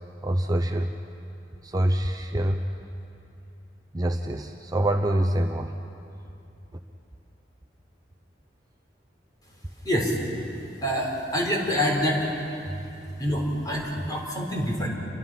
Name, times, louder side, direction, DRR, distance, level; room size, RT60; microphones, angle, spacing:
voice 1, 0.2-0.9 1.6-2.7 3.9-5.8 12.7-13.2, right 1 dB, 20° right, 4 dB, 0.7 m, -26 dB
voice 2, 9.8-10.2 10.7-12.2 13.2-14.9, equal, 20° left, -1 dB, 4.3 m, -26 dB
29.0 x 23.0 x 5.9 m, 2.8 s
head